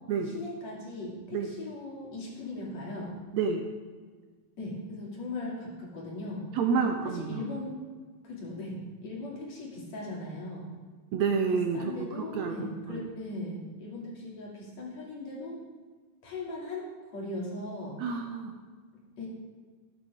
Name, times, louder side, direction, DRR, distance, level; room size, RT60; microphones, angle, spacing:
voice 1, 0.2-3.1 4.6-6.5 7.1-7.7 8.2-10.7 11.7-15.6 16.2-16.9 17.1-18.0 19.2-19.3, left 2 dB, 50° left, -4 dB, 3.7 m, -38 dB
voice 2, 3.3-3.6 6.5-7.4 11.1-13.1 18.0-18.5, right 5 dB, 80° right, 4 dB, 1.6 m, -29 dB
18.0 x 9.0 x 3.6 m, 1.5 s
omnidirectional pair, 4.0 m